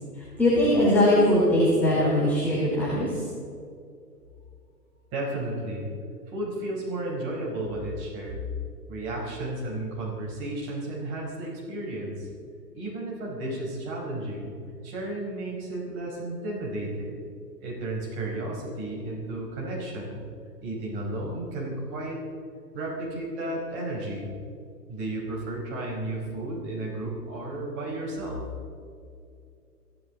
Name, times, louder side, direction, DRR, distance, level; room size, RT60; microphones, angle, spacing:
voice 1, 0.4-3.2, left 1 dB, 5° left, -9 dB, 2.8 m, -21 dB
voice 2, 5.1-5.9 6.3-8.5 8.9-12.3 12.7-14.5 14.8-17.2 17.6-20.2 20.6-22.2 22.7-24.3 24.9-28.4, right 1 dB, 25° right, -3 dB, 4.8 m, -33 dB
23.0 x 15.5 x 4.1 m, 2.4 s
figure-of-eight pair, 125°, 48 cm